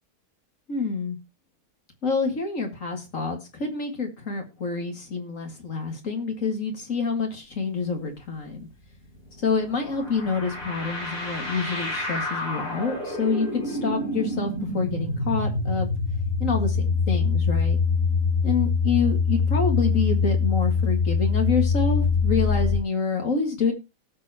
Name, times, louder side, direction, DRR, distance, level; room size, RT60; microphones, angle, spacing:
voice 1, 0.7-1.2 2.0-8.7 9.4-15.9 16.4-17.8 18.4-23.7, left 4 dB, 55° left, 3 dB, 2.4 m, -27 dB
sound 1, 8.9-22.8, left 4 dB, 85° left, 6.0 m, -25 dB
18.5 x 6.7 x 2.9 m, 0.27 s
omnidirectional pair, 1.6 m